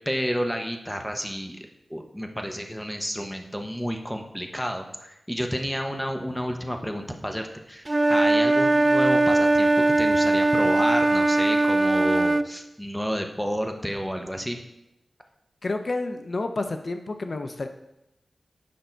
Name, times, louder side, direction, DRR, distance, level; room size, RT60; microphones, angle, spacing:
voice 1, 0.1-1.6 1.9-14.6, equal, ahead, 4 dB, 0.9 m, -31 dB
Wind instrument woodwind instrument, 7.9-12.5, right 2 dB, 25° right, 0.3 m, -20 dB
voice 2, 15.6-17.7, left 2 dB, 50° left, 7 dB, 0.5 m, -30 dB
9.3 x 5.5 x 4.5 m, 0.87 s
wide cardioid pair, 110°, 0 cm